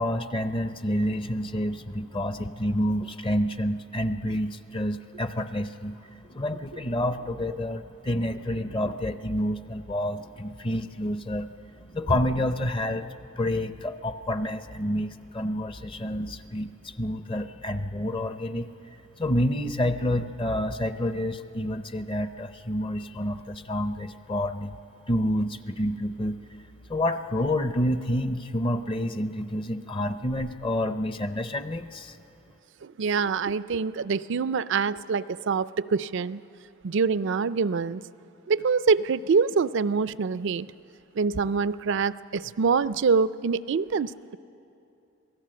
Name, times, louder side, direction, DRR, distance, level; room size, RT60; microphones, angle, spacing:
voice 1, 0.0-5.9 6.3-11.5 11.9-13.1 13.4-18.7 19.2-24.8 25.1-26.4 26.9-32.1, left 1 dB, 25° left, 10 dB, 0.6 m, -28 dB
voice 2, 32.8-36.4 36.8-38.0 38.5-40.7 41.2-44.1, right 5 dB, 60° right, 16 dB, 0.4 m, -25 dB
27.0 x 17.5 x 7.7 m, 2.7 s
head